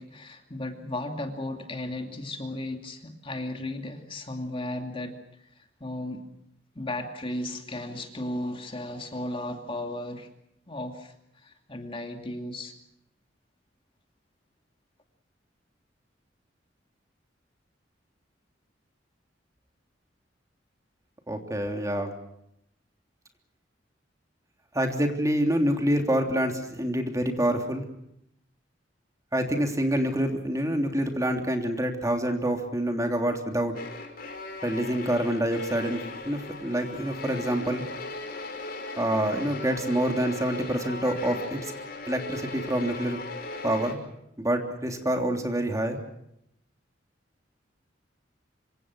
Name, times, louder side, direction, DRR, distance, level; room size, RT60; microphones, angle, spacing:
voice 1, 0.0-5.1 5.4-6.2 6.8-10.3 10.7-12.7, left 1 dB, 30° left, 4 dB, 2.5 m, -35 dB
voice 2, 21.3-22.1 24.7-27.8 29.3-33.7 34.6-37.9 39.0-41.6 42.1-43.2 43.6-44.0 44.4-46.0, right 1 dB, 20° right, 4 dB, 3.1 m, -27 dB
sound 1, 33.7-43.9, left 3 dB, 55° left, 5.1 m, -38 dB
26.5 x 25.5 x 6.3 m, 0.78 s
head